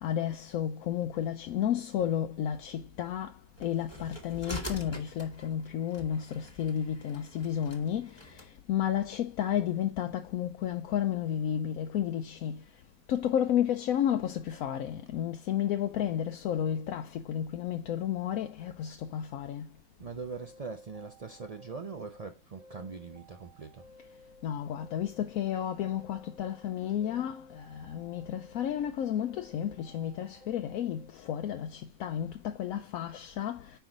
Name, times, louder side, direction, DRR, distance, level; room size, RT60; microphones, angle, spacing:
voice 1, 0.0-12.6 13.1-19.7 24.4-33.8, left 10 dB, 80° left, 1.0 m, -32 dB
sound 1, 3.6-8.5, equal, 20° left, 1.3 m, -45 dB
voice 2, 20.0-23.8, right 4 dB, 70° right, 0.3 m, -42 dB
sound 2, 20.4-22.3 22.6-24.5 24.8-26.7 27.0-28.9 29.2-31.1, left 1 dB, 35° right, 1.1 m, -56 dB
5.6 x 4.6 x 3.7 m
omnidirectional pair, 1.5 m